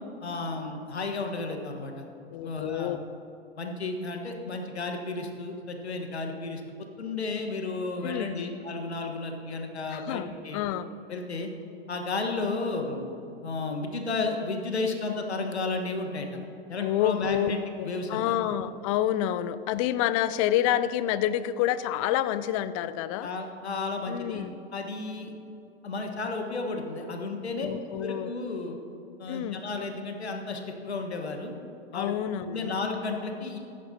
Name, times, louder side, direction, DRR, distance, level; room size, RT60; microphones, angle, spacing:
voice 1, 0.2-2.0 2.4-3.0 3.6-10.6 11.1-11.5 11.9-13.1 13.4-16.3 16.7-18.3 23.2-24.4 24.7-25.3 25.8-27.7 28.0-28.8 29.2-31.5 31.9-32.2 32.5-33.6, left 3 dB, 85° left, 4 dB, 1.5 m, -33 dB
voice 2, 2.3-3.0 8.0-8.4 9.9-10.9 16.8-23.3 24.1-24.5 27.6-28.3 29.3-29.7 31.9-32.7, left 11 dB, 35° left, 15 dB, 0.4 m, -28 dB
14.5 x 10.5 x 2.8 m, 2.7 s
hypercardioid pair, 110°, 32 cm